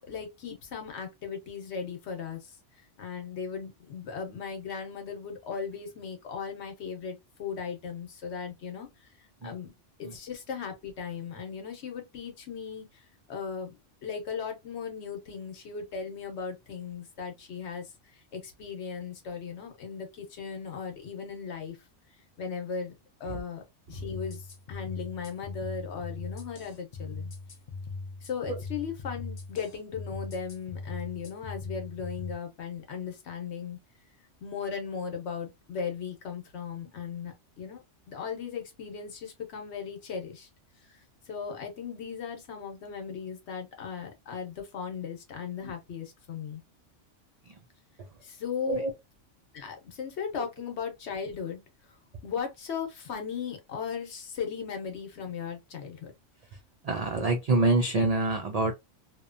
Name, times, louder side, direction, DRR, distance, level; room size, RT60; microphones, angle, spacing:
voice 1, 0.1-2.5 3.0-8.9 9.4-9.7 10.0-12.9 13.3-13.7 14.0-17.9 18.3-21.8 22.4-23.6 23.9-27.3 28.2-33.8 34.4-40.5 41.3-46.6 48.2-48.8 49.5-51.6 52.2-56.1, left 6 dB, 65° left, 1.0 m, -37 dB
sound 1, 23.9-32.3, left 3 dB, 40° left, 0.6 m, -40 dB
voice 2, 56.8-58.7, right 2 dB, 65° right, 0.3 m, -26 dB
2.8 x 2.2 x 2.4 m
omnidirectional pair, 1.3 m